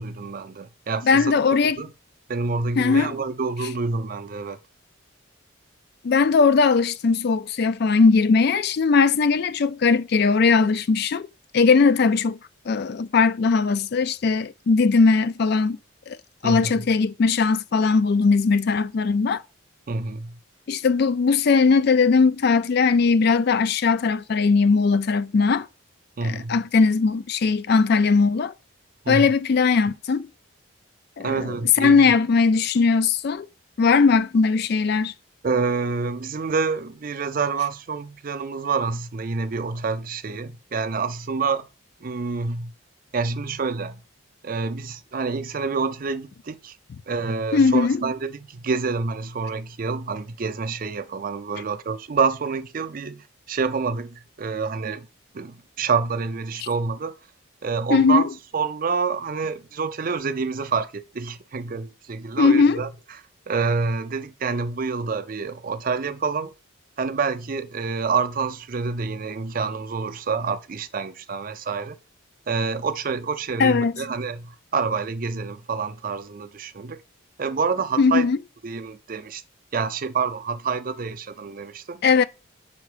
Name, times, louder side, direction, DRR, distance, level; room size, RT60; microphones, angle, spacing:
voice 1, 0.0-1.3 1.8-1.9 2.3-4.6 16.4-16.9 19.9-20.4 26.2-26.6 29.1-29.3 31.2-32.0 35.4-41.7 42.0-42.7 43.1-44.0 44.4-46.8 47.1-55.1 55.3-57.1 57.6-58.3 58.5-62.9 63.5-66.5 67.0-72.0 72.5-77.0 77.4-78.3 78.6-79.4 79.7-82.0, right 4 dB, 40° right, 0.4 m, -27 dB
voice 2, 1.0-1.8 2.8-3.1 6.0-11.3 11.5-12.4 12.7-15.8 16.1-16.2 16.4-19.4 20.7-25.7 26.2-28.5 29.1-30.3 31.2-33.5 33.8-35.1 47.5-48.0 57.9-58.2 62.4-62.8 73.6-73.9 78.0-78.4 82.0-82.2, left 4 dB, 50° left, 0.3 m, -19 dB
5.7 x 4.4 x 4.9 m
head